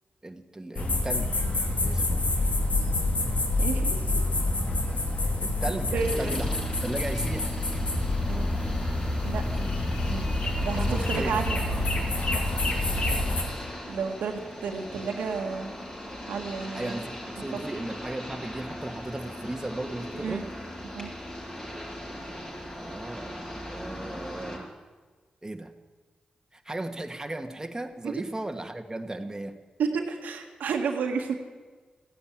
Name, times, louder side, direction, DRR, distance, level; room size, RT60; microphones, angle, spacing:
voice 1, 0.2-1.5 1.8-2.2 5.4-7.5 10.7-11.4 16.7-20.5 22.7-24.7 25.4-25.7 26.5-29.6, right 2 dB, 20° right, 5 dB, 1.5 m, -36 dB
sound 1, 0.8-13.4, left 2 dB, 55° left, 2.7 m, -27 dB
voice 2, 3.6-4.2 5.9-6.4 8.3-8.5 9.2-9.8 10.0-10.3 10.6-11.6 12.3-12.4 13.9-15.7 16.3-17.0 17.5-17.6 20.1-20.4 20.9-21.1 28.0-28.1 29.8-31.3, right 5 dB, 90° right, 3 dB, 1.6 m, -31 dB
sound 2, 6.0-24.6, equal, 30° left, 5.7 m, -39 dB
15.5 x 9.7 x 9.0 m, 1.4 s
cardioid pair, 50°, 3 cm